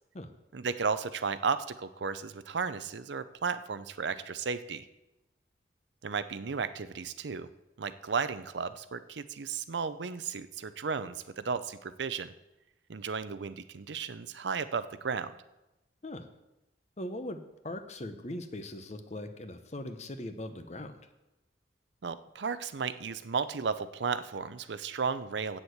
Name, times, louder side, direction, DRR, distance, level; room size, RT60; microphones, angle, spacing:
voice 1, 0.5-4.9 6.0-7.5 7.8-12.3 12.9-15.3 22.0-25.6, right 5 dB, 80° right, 13 dB, 0.6 m, -34 dB
voice 2, 17.0-20.9, left 1 dB, 40° left, 9 dB, 0.9 m, -40 dB
8.1 x 7.1 x 8.1 m, 0.96 s
head